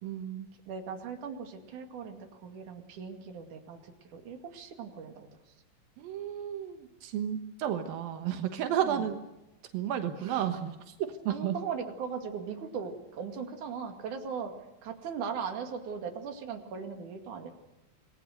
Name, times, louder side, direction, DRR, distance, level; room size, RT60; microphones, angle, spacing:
voice 1, 0.0-0.5 6.0-9.2 9.7-10.9 11.2-11.6, right 10 dB, 90° right, 6 dB, 3.2 m, -32 dB
voice 2, 0.7-5.3 8.9-9.0 10.2-10.4 11.3-14.5 14.8-17.5, right 6 dB, 65° right, 4 dB, 3.6 m, -39 dB
27.5 x 20.0 x 6.6 m, 0.96 s
omnidirectional pair, 4.0 m